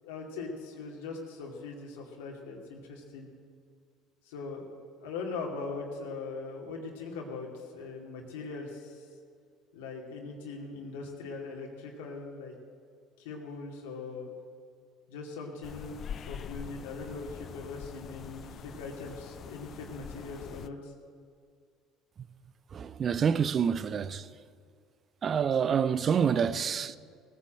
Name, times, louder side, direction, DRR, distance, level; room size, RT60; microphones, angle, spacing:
voice 1, 0.0-3.3 4.3-4.7 5.0-9.1 9.7-12.5 13.2-14.3 15.1-20.9, left 4 dB, 85° left, 2.4 m, -40 dB
sound 1, 15.6-20.7, left 8 dB, 50° left, 0.6 m, -44 dB
voice 2, 22.7-24.4 25.2-27.0, right 7 dB, 45° right, 0.7 m, -27 dB
18.0 x 9.8 x 7.7 m
hypercardioid pair, 75°, 0 cm